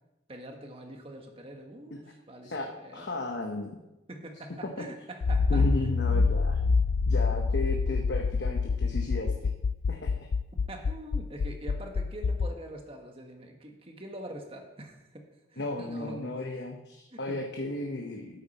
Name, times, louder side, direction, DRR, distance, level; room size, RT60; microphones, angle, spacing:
voice 1, 0.3-3.2 4.1-5.6 10.5-16.3 17.1-17.4, right 1 dB, 30° right, 3 dB, 1.4 m, -44 dB
voice 2, 2.4-3.8 4.6-4.7 5.5-6.6 7.1-9.5 9.9-10.1 15.6-18.4, left 2 dB, 70° left, 2 dB, 1.0 m, -34 dB
Accelerating revving vroom, 5.2-12.5, left 4 dB, 85° left, 0.4 m, -27 dB
11.5 x 8.4 x 4.3 m, 0.97 s
head